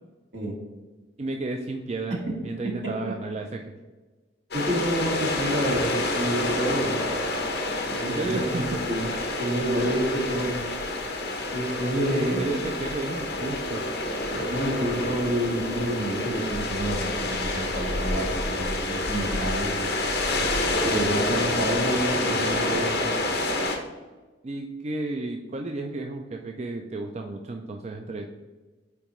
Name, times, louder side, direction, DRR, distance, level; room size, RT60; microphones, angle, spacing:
voice 1, 1.2-3.7 8.1-8.8 12.0-13.8 24.4-28.3, right 2 dB, 35° right, 3 dB, 0.4 m, -32 dB
sound 1, 4.5-23.8, left 2 dB, 55° left, 1.0 m, -28 dB
voice 2, 4.5-6.9 7.9-9.1 9.4-10.6 11.5-12.5 14.3-20.0 20.8-23.1, right 1 dB, 70° right, -2 dB, 1.9 m, -28 dB
8.6 x 4.7 x 3.1 m, 1.3 s
head